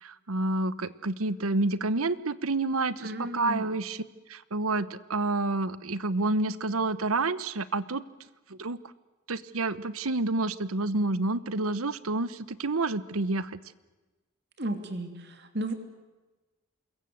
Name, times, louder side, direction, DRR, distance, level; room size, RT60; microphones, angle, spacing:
voice 1, 0.0-4.0 4.3-8.0 8.5-8.8 9.3-13.6, right 2 dB, 85° right, 16 dB, 1.1 m, -29 dB
voice 2, 3.0-3.7 14.6-15.7, right 1 dB, 50° right, 7 dB, 3.0 m, -34 dB
27.5 x 22.0 x 8.0 m, 1.2 s
head